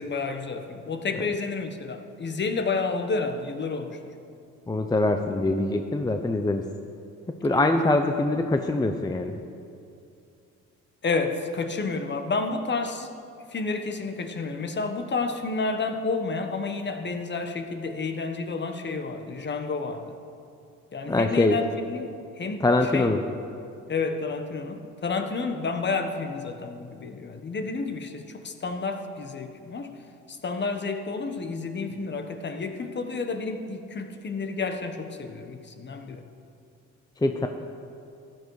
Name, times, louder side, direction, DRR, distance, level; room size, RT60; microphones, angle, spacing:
voice 1, 0.0-4.1 7.4-7.7 8.0-8.1 11.0-13.1 13.5-20.2 20.9-22.1 22.4-22.6 22.9-23.1 23.9-29.9 30.3-36.2, left 4 dB, 35° left, 7 dB, 1.1 m, -30 dB
voice 2, 4.7-6.6 7.4-9.4 21.1-21.6 22.6-23.2 37.2-37.5, left 2 dB, 15° left, 6 dB, 0.6 m, -23 dB
14.5 x 10.5 x 4.8 m, 2.6 s
cardioid pair, 90°, 30 cm